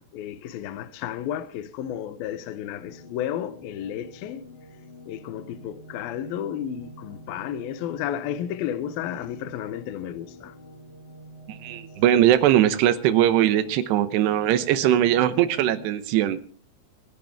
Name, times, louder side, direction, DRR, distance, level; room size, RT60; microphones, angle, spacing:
voice 1, 0.0-4.4 5.1-10.6, left 10 dB, 70° left, 2.4 m, -32 dB
sound 1, 2.9-15.9, equal, 30° left, 2.8 m, -46 dB
voice 2, 11.5-16.5, right 11 dB, 75° right, 2.8 m, -20 dB
24.5 x 11.0 x 3.5 m
omnidirectional pair, 5.5 m